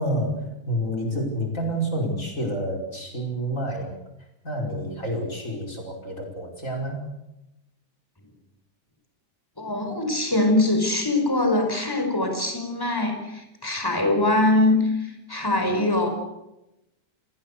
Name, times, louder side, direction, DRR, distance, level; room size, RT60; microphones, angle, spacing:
voice 1, 0.0-4.0 4.4-7.0, equal, 25° left, 1 dB, 5.4 m, -28 dB
voice 2, 9.6-16.1, left 2 dB, 5° left, 5 dB, 5.0 m, -23 dB
28.5 x 20.5 x 6.8 m, 0.92 s
omnidirectional pair, 3.6 m